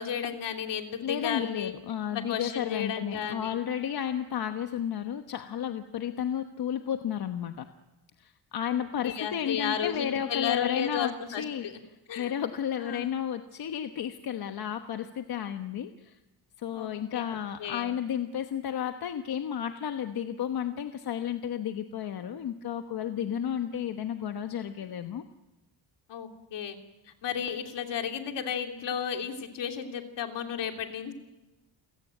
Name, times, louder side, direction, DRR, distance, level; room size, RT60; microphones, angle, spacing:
voice 1, 0.0-1.7 2.1-3.6 8.7-11.8 12.1-12.3 12.8-13.1 16.7-17.9 26.1-26.8 27.2-31.1, left 8 dB, 75° left, 4 dB, 3.1 m, -33 dB
voice 2, 1.0-7.7 8.2-11.6 12.2-16.1 16.6-25.2, left 9 dB, 55° left, 7 dB, 1.2 m, -32 dB
29.0 x 17.0 x 9.2 m, 1.0 s
cardioid pair, 155°, 43 cm